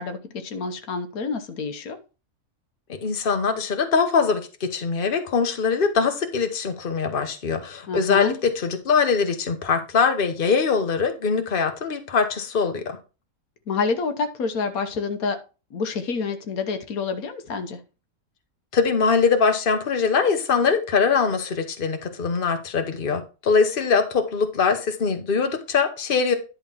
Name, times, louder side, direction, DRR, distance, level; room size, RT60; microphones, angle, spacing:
voice 1, 0.0-2.0 7.9-8.4 13.7-15.4 15.7-17.8, left 4 dB, 80° left, 1.4 m, -28 dB
voice 2, 3.0-13.0 18.7-26.3, left 5 dB, 40° left, 1.2 m, -22 dB
10.5 x 3.7 x 5.6 m
omnidirectional pair, 1.5 m